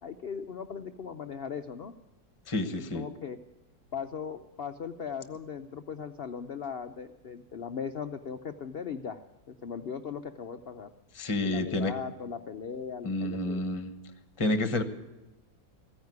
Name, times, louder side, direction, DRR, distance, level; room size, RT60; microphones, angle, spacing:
voice 1, 0.0-1.9 2.8-3.4 3.9-9.2 9.5-10.9 11.4-13.7, left 6 dB, 85° left, 8 dB, 0.5 m, -38 dB
voice 2, 2.5-3.1 11.1-11.9 13.0-13.9 14.4-14.8, left 2 dB, 20° left, 10 dB, 1.0 m, -29 dB
15.0 x 9.7 x 9.4 m, 1.0 s
omnidirectional pair, 1.9 m